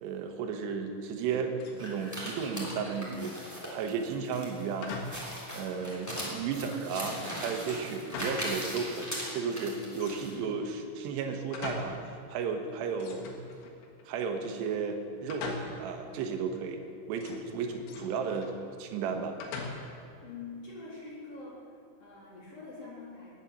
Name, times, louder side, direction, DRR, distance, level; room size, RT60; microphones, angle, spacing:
voice 1, 0.0-1.5 1.8-3.3 3.7-4.9 5.5-12.0 12.3-13.3 14.1-16.8 17.1-18.5 18.8-19.4, right 5 dB, 75° right, 4 dB, 3.2 m, -34 dB
sound 1, 1.3-1.8 2.1-3.2 4.8-5.3 5.7-5.8 6.2-6.9 7.6-8.7 8.9-9.0 9.9-10.6 11.1-12.1 12.4-12.5 13.0-14.0 15.3-16.0 17.2-18.6 19.4-20.1, left 4 dB, 90° left, 4.0 m, -42 dB
sound 2, 1.8-10.3, equal, 5° left, 2.5 m, -39 dB
voice 2, 20.2-21.6 22.0-23.3, left 3 dB, 35° left, -6 dB, 4.6 m, -44 dB
19.0 x 8.8 x 7.1 m, 2.4 s
omnidirectional pair, 5.3 m